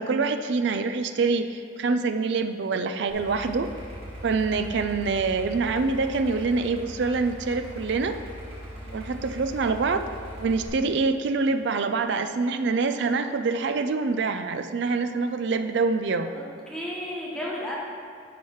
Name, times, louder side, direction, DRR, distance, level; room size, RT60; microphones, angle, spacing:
voice 1, 0.0-3.7 4.2-8.2 8.9-10.1 10.4-16.3, right 4 dB, 60° right, 8 dB, 0.4 m, -25 dB
Idling, 3.1-10.7, equal, 30° right, 1.8 m, -40 dB
voice 2, 16.3-17.7, left 1 dB, 5° left, -6 dB, 1.2 m, -34 dB
10.0 x 7.2 x 3.1 m, 2.4 s
head